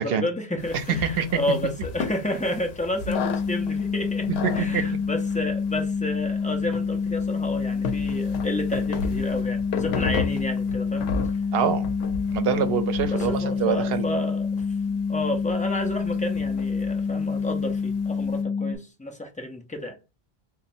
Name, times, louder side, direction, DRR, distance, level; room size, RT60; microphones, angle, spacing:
voice 1, 0.0-4.3 4.5-11.1 13.1-14.6 14.9-20.0, left 1 dB, 15° left, 0.3 m, -31 dB
sound 1, 0.6-18.4, left 5 dB, 85° left, 0.8 m, -36 dB
sound 2, 3.1-18.8, left 5 dB, 55° left, 0.6 m, -27 dB
voice 2, 4.4-4.8 11.5-11.9 12.3-14.1, right 7 dB, 75° right, 0.8 m, -25 dB
3.1 x 2.2 x 4.2 m
omnidirectional pair, 1.0 m